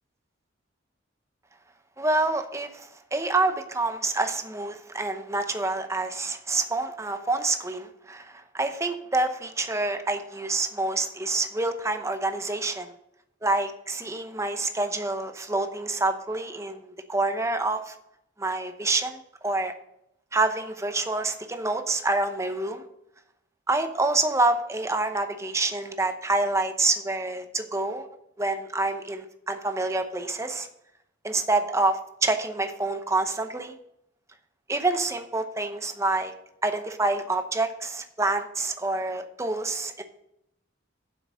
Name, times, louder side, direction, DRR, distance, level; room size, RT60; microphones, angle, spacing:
voice 1, 2.0-12.9 13.4-17.9 18.4-19.7 20.3-22.8 23.7-28.1 28.4-30.7 31.2-33.8 34.7-36.3 36.6-40.0, right 2 dB, 15° right, 7 dB, 0.7 m, -27 dB
7.8 x 5.8 x 7.4 m, 0.80 s
head